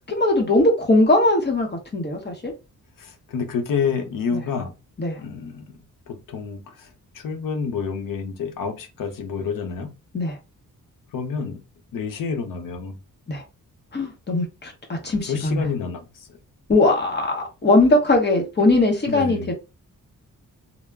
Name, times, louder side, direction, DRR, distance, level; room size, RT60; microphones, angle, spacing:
voice 1, 0.1-2.5 5.0-5.2 10.1-10.4 13.3-13.4 13.9-15.7 16.7-19.5, left 2 dB, 30° left, 0.8 m, -20 dB
voice 2, 3.0-4.7 5.2-5.8 6.1-6.9 7.1-9.9 11.1-11.6 11.9-13.0 15.2-16.1 19.1-19.5, left 6 dB, 85° left, 0.7 m, -28 dB
2.2 x 2.0 x 3.3 m
wide cardioid pair, 125°, 32 cm